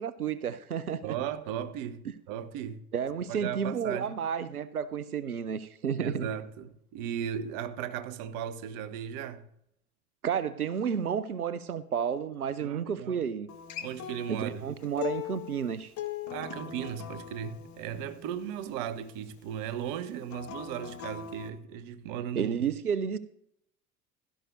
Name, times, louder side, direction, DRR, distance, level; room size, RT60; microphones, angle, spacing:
voice 1, 0.0-1.1 2.9-6.3 10.2-13.5 14.3-15.9 22.4-23.2, right 7 dB, 90° right, 0.6 m, -31 dB
voice 2, 1.0-2.8 3.3-4.2 5.9-9.5 12.6-13.2 13.8-14.7 16.3-22.7, right 9 dB, 50° right, 1.2 m, -36 dB
Acoustic guitar, 13.5-18.7 20.2-21.5, left 11 dB, 40° left, 1.6 m, -40 dB
16.5 x 12.5 x 2.7 m
figure-of-eight pair, 65°, 43 cm